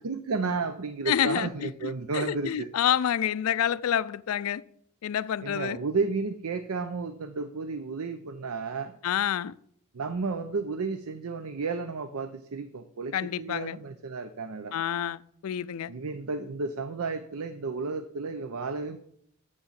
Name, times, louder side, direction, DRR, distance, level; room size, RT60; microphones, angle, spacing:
voice 1, 0.0-2.7 5.4-9.0 9.9-14.8 15.9-19.0, right 4 dB, 85° right, 0.6 m, -32 dB
voice 2, 1.1-4.6 5.0-5.8 9.0-9.6 13.1-13.8 14.7-15.9, left 9 dB, 80° left, 0.4 m, -28 dB
7.0 x 6.5 x 7.3 m
head